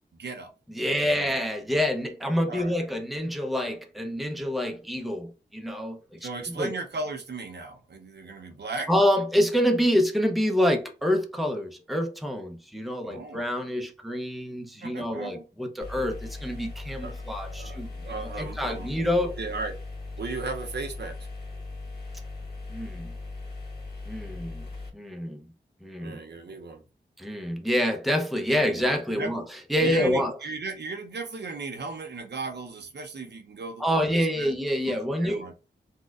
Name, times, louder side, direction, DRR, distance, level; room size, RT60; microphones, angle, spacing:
voice 1, 0.2-0.5 0.8-1.3 2.5-2.7 6.2-8.9 13.0-13.4 14.8-15.4 17.0-17.2 17.4-18.9 19.2-19.8 20.2-21.2 26.0-26.8 28.7-29.5 29.8-34.1 34.4-34.5 34.8-35.5, right 3 dB, 65° right, 0.8 m, -36 dB
voice 2, 0.7-6.3 6.6-6.7 8.9-17.9 18.2-19.3 22.7-23.1 24.1-24.6 24.9-25.4 25.8-26.2 27.2-29.4 29.7-30.4 33.8-35.5, equal, ahead, 0.7 m, -27 dB
sound 1, 15.8-24.9, left 3 dB, 60° left, 1.4 m, -39 dB
4.1 x 2.3 x 2.4 m
cardioid pair, 45°, 19 cm